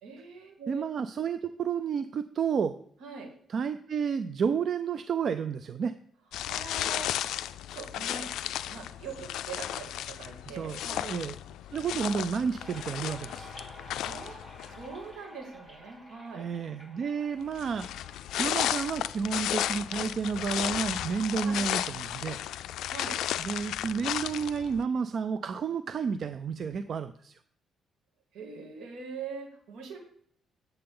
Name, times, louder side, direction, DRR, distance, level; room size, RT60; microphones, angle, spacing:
voice 1, 0.0-0.8 3.0-3.3 6.5-7.1 7.7-8.3 8.7-11.1 14.0-14.4 14.7-16.5 21.4-21.6 22.9-23.2 28.3-30.0, right 5 dB, 80° right, 2 dB, 2.2 m, -42 dB
voice 2, 0.7-2.7 3.5-5.9 10.5-11.4 11.7-13.5 16.3-17.9 18.4-22.4 23.4-27.4, right 6 dB, 55° right, 12 dB, 0.4 m, -31 dB
sound 1, 6.3-14.9 17.5-24.8, left 12 dB, 80° left, 0.3 m, -34 dB
sound 2, 12.6-19.2, equal, 15° right, 3.6 m, -50 dB
8.6 x 7.8 x 3.8 m, 0.64 s
cardioid pair, 80°, 0 cm